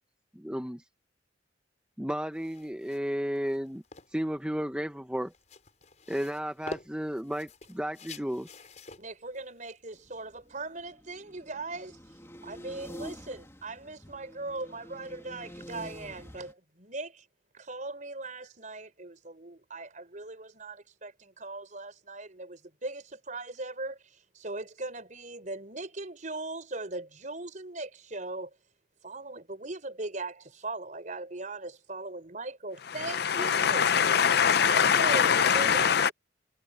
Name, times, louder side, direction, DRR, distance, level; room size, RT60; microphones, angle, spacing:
voice 1, 0.3-0.8 2.0-3.8 4.1-5.3 6.1-8.5, equal, 5° right, 0.9 m, -33 dB
sound 1, 2.3-10.9, left 2 dB, 40° left, 5.4 m, -48 dB
voice 2, 9.0-12.0 12.4-17.2 17.5-24.0 24.3-28.5 29.0-33.9 34.5-35.9, right 2 dB, 45° right, 4.9 m, -39 dB
sound 2, 9.9-16.5, equal, 15° left, 2.5 m, -47 dB
voice 3, 32.9-36.1, left 7 dB, 60° left, 0.6 m, -23 dB
head